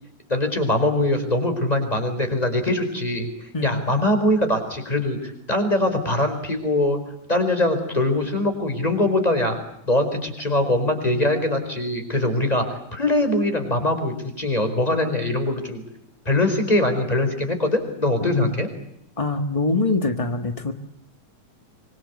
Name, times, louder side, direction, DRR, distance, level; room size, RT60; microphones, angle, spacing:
voice 1, 0.3-3.3 3.6-7.0 7.3-9.6 9.9-15.8 16.2-18.7, left 1 dB, 10° left, 7 dB, 4.8 m, -22 dB
voice 2, 18.2-18.6 19.2-20.7, left 3 dB, 30° left, 7 dB, 0.6 m, -24 dB
26.0 x 25.0 x 8.4 m, 0.76 s
omnidirectional pair, 3.4 m